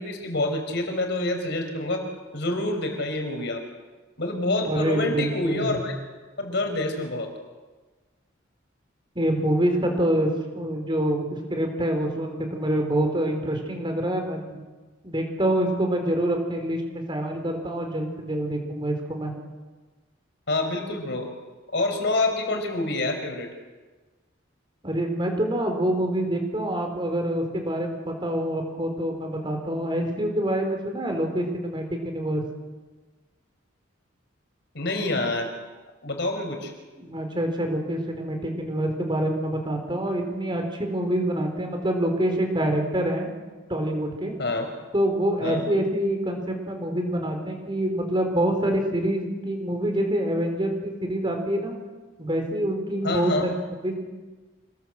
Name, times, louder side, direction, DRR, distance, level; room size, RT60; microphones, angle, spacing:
voice 1, 0.0-2.1 2.3-3.6 4.2-5.9 6.4-7.3 20.5-21.3 21.7-23.5 34.7-35.5 36.0-36.7 44.4-44.7 45.4-45.6 53.0-53.5, left 2 dB, 55° left, 5 dB, 4.6 m, -27 dB
voice 2, 4.6-5.8 9.1-14.6 15.0-19.3 24.8-32.4 37.0-43.3 43.7-44.3 44.9-51.8 52.2-53.5 53.8-54.0, right 1 dB, 25° right, 4 dB, 4.4 m, -26 dB
27.0 x 19.5 x 7.9 m, 1.3 s
head